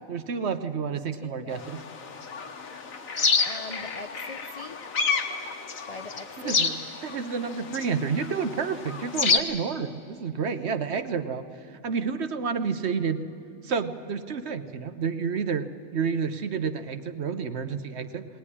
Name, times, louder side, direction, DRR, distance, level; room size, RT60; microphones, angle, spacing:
voice 1, 0.1-1.8 6.4-13.3 13.6-18.3, right 6 dB, 55° right, 10 dB, 1.0 m, -30 dB
voice 2, 0.9-1.7 3.5-4.8 5.9-6.6 10.5-10.8, left 3 dB, 45° left, 7 dB, 0.5 m, -42 dB
sound 1, 1.6-9.4, left 5 dB, 75° left, 1.6 m, -29 dB
20.5 x 18.5 x 9.8 m, 2.7 s
omnidirectional pair, 1.5 m